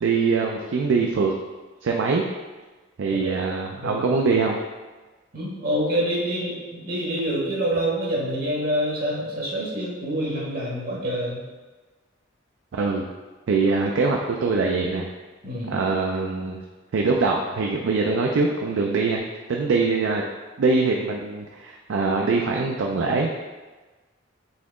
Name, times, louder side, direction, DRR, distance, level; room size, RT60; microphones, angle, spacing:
voice 1, 0.0-1.3 1.8-2.2 3.0-4.6 12.7-13.0 13.5-15.1 15.7-16.6 16.9-19.2 19.5-20.2 20.6-23.3, right 4 dB, 75° right, 1 dB, 0.4 m, -23 dB
voice 2, 5.3-11.4 15.4-15.8, equal, 50° right, -4 dB, 1.0 m, -26 dB
4.2 x 2.9 x 3.6 m, 1.3 s
head